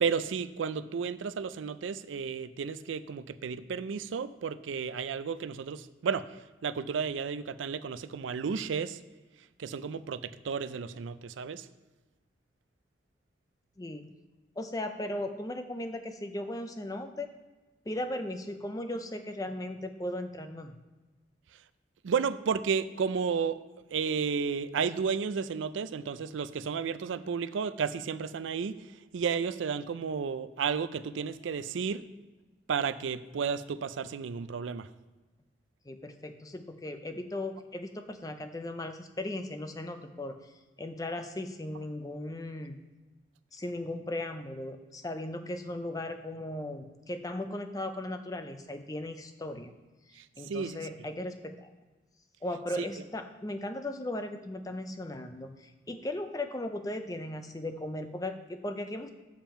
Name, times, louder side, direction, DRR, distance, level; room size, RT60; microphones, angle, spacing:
voice 1, 0.0-6.4 6.6-9.0 9.6-11.7 22.0-23.6 23.9-28.8 29.1-32.0 32.7-34.9 50.2-50.8 52.8-52.9, right 6 dB, 90° right, 14 dB, 0.4 m, -32 dB
voice 2, 13.8-14.1 14.6-17.3 17.9-20.8 35.8-40.5 40.8-42.8 43.5-49.7 50.1-51.7 52.4-59.1, left 1 dB, 20° left, 8 dB, 0.5 m, -37 dB
7.3 x 7.2 x 4.4 m, 1.2 s
head